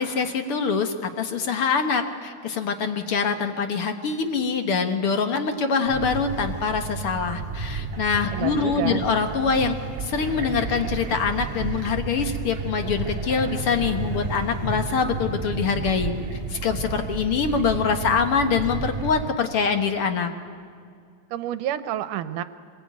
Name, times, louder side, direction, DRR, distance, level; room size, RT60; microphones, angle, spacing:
voice 1, 0.0-16.1 16.5-20.3, left 5 dB, 55° left, 7 dB, 1.8 m, -24 dB
sound 1, 5.9-19.3, right 4 dB, 35° right, 1.7 m, -32 dB
voice 2, 8.3-9.1 21.3-22.4, right 11 dB, 75° right, 12 dB, 2.2 m, -29 dB
24.5 x 21.0 x 9.3 m, 2.3 s
omnidirectional pair, 3.8 m